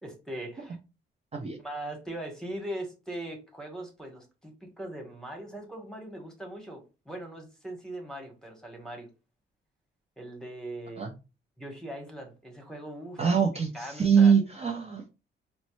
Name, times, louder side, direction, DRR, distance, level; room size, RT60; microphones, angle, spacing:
voice 1, 0.0-0.8 1.6-9.1 10.2-11.0 11.6-13.4 13.7-14.3, right 1 dB, 5° left, 3 dB, 1.1 m, -40 dB
voice 2, 13.2-15.1, right 6 dB, 30° right, 2 dB, 0.6 m, -23 dB
4.3 x 2.1 x 3.1 m, 0.30 s
cardioid pair, 110°, 20 cm